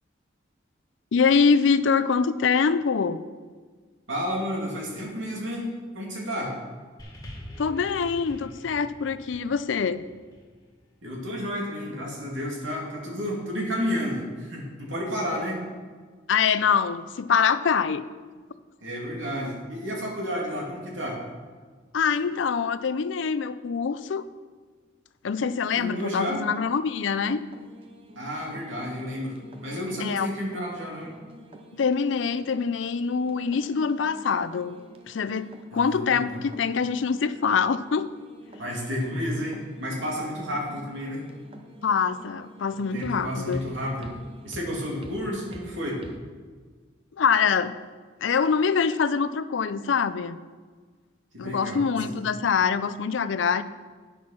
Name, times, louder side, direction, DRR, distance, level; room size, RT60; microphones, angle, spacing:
voice 1, 1.1-3.2 7.6-10.0 16.3-18.1 21.9-24.2 25.2-27.5 30.0-30.3 31.8-34.8 35.1-38.1 41.8-43.7 47.2-47.8 48.2-50.4 51.4-53.6, left 6 dB, 75° left, 14 dB, 0.5 m, -24 dB
voice 2, 4.1-5.7 5.9-6.5 11.0-15.6 18.8-21.2 25.7-26.4 28.1-29.4 29.6-31.1 35.7-36.4 38.6-41.2 42.9-44.2 44.4-46.0 51.3-52.1, equal, 80° right, -2 dB, 2.7 m, -31 dB
sound 1, 7.0-11.5 12.4-12.5, equal, 20° left, 1.7 m, -45 dB
sound 2, 27.0-46.2, right 1 dB, 30° right, 0.7 m, -48 dB
9.4 x 6.3 x 5.9 m, 1.5 s
head